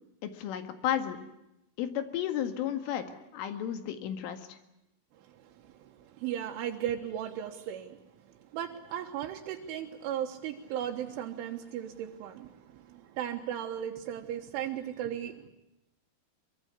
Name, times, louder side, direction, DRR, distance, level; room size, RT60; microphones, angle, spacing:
voice 1, 0.2-1.2 1.8-4.6, left 10 dB, 80° left, 8 dB, 4.4 m, -33 dB
voice 2, 5.3-8.0 8.4-15.5, right 10 dB, 80° right, 2 dB, 3.7 m, -36 dB
24.0 x 23.0 x 8.3 m, 0.89 s
omnidirectional pair, 5.7 m